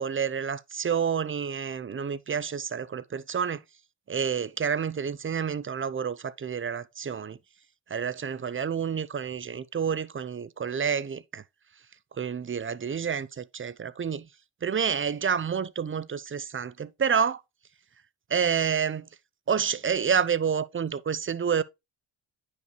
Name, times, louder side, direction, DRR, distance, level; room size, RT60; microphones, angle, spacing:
voice 1, 0.0-3.6 4.1-7.4 7.9-11.4 12.2-14.2 14.6-17.4 18.3-19.1 19.5-21.6, right 7 dB, 25° right, 0.6 m, -29 dB
9.5 x 5.2 x 3.1 m
cardioid pair, 65°, 46 cm